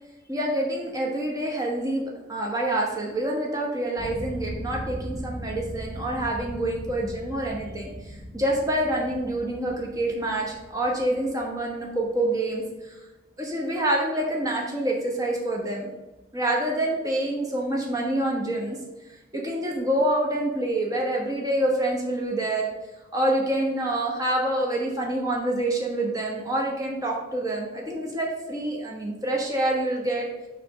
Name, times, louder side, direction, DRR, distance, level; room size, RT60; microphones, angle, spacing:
voice 1, 0.3-13.0 13.4-15.9 16.3-18.8 19.1-22.7 23.1-30.3, right 1 dB, 15° right, -2 dB, 1.1 m, -27 dB
sound 1, 4.0-12.4, equal, 50° left, 1.4 m, -39 dB
6.7 x 3.4 x 6.0 m, 1.1 s
head